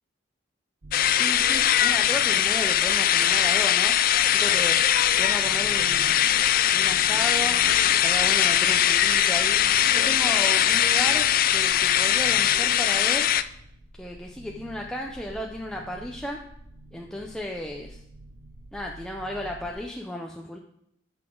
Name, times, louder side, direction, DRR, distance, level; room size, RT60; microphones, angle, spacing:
sound 1, 0.8-19.7, right 1 dB, 55° right, 0.9 m, -47 dB
sound 2, 0.9-13.4, left 11 dB, 45° left, 0.3 m, -21 dB
voice 1, 1.1-3.9 4.2-4.8 5.1-6.2 6.7-7.6 8.0-9.6 9.9-13.3 14.0-16.4 16.9-18.0 18.7-20.6, left 1 dB, 5° left, 0 dB, 0.6 m, -34 dB
12.5 x 5.9 x 3.8 m, 0.74 s
head